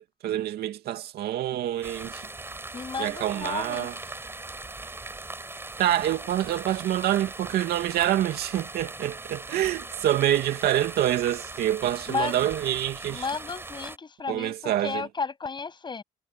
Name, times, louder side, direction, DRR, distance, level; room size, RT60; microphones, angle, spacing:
voice 1, 0.0-2.3 3.0-4.0 5.8-13.3 14.3-15.1, right 12 dB, 70° right, 2.6 m, -26 dB
sound 1, 1.8-14.0, right 2 dB, 15° right, 5.3 m, -40 dB
voice 2, 2.7-3.9 12.1-12.4 13.1-16.0, left 4 dB, 25° left, 8.0 m, -33 dB
cardioid pair, 110°, 17 cm